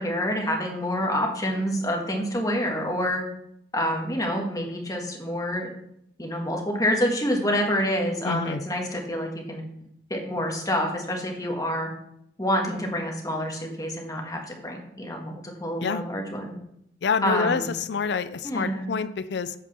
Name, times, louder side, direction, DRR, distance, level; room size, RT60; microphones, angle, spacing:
voice 1, 0.0-3.2 3.7-5.7 6.2-9.6 10.1-11.9 12.4-16.5 17.2-17.7 18.4-18.9, equal, 20° left, 1 dB, 1.7 m, -27 dB
voice 2, 8.2-8.6 15.8-16.0 17.0-19.5, left 5 dB, 65° left, 15 dB, 0.5 m, -27 dB
8.4 x 5.2 x 6.8 m, 0.75 s
head